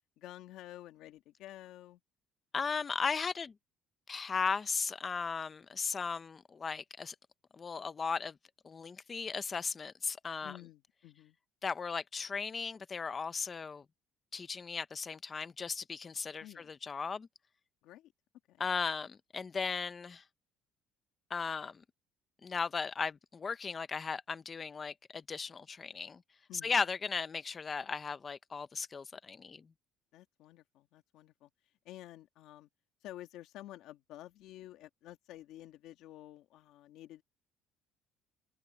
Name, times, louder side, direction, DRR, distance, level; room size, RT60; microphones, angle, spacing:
voice 1, 0.2-2.0 10.4-11.4 16.4-16.7 17.8-18.1 18.5-18.7 26.5-26.8 30.1-31.5 31.8-32.7 33.0-37.2, left 14 dB, 60° left, 1.7 m, -51 dB
voice 2, 2.5-3.5 4.1-7.1 7.5-8.4 8.6-10.6 11.6-13.8 14.3-17.3 18.6-20.2 21.3-21.8 22.4-26.2 26.6-29.7, left 5 dB, 20° left, 0.6 m, -36 dB
cardioid pair, 180°, 0 cm